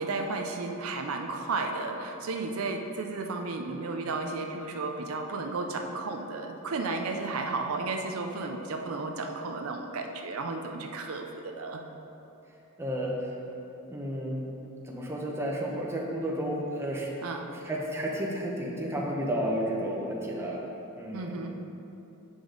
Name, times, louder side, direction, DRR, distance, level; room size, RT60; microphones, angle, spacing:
voice 1, 0.0-11.8 17.2-17.6 21.1-21.6, right 3 dB, 75° right, 4 dB, 0.5 m, -33 dB
voice 2, 12.8-13.3 13.9-14.5 14.8-17.1 17.6-20.6 20.9-21.4, equal, 10° right, -2 dB, 0.8 m, -32 dB
7.9 x 5.2 x 3.8 m, 2.9 s
head